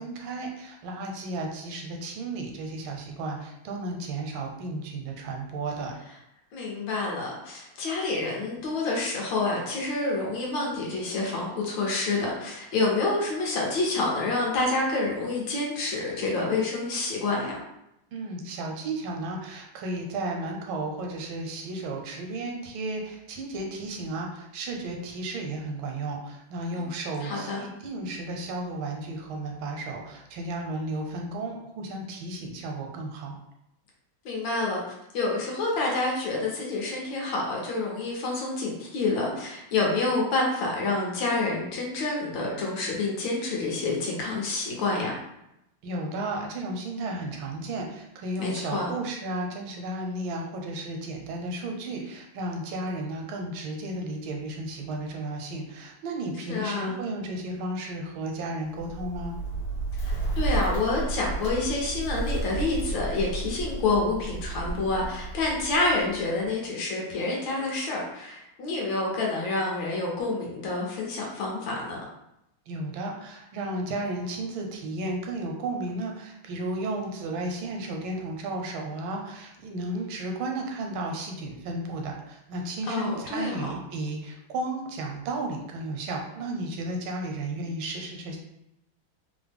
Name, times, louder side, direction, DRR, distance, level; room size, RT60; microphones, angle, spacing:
voice 1, 0.0-5.9 18.1-33.4 45.8-59.4 72.7-88.4, right 2 dB, 80° right, 1 dB, 1.4 m, -33 dB
voice 2, 6.5-17.6 27.2-27.6 34.2-34.8 35.1-45.2 48.4-48.9 56.5-56.9 60.0-72.0 82.8-83.7, left 3 dB, 75° left, -2 dB, 1.5 m, -28 dB
Bird, 58.7-66.5, right 3 dB, 50° left, 1.3 m, -32 dB
3.5 x 2.0 x 3.4 m, 0.84 s
omnidirectional pair, 2.2 m